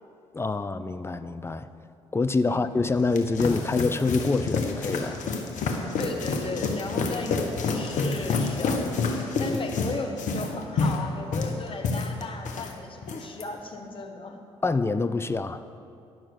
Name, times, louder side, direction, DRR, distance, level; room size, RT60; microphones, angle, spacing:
voice 1, 0.3-1.7 2.1-5.2 9.5-9.6 14.6-15.6, left 3 dB, 20° left, 11 dB, 0.6 m, -26 dB
sound 1, 2.8-12.7 13.0-13.4, left 4 dB, 60° left, 1.2 m, -28 dB
voice 2, 6.0-8.8 9.4-14.4, left 3 dB, 40° left, 3 dB, 1.6 m, -35 dB
11.0 x 6.2 x 8.1 m, 2.6 s
hypercardioid pair, 45°, 14 cm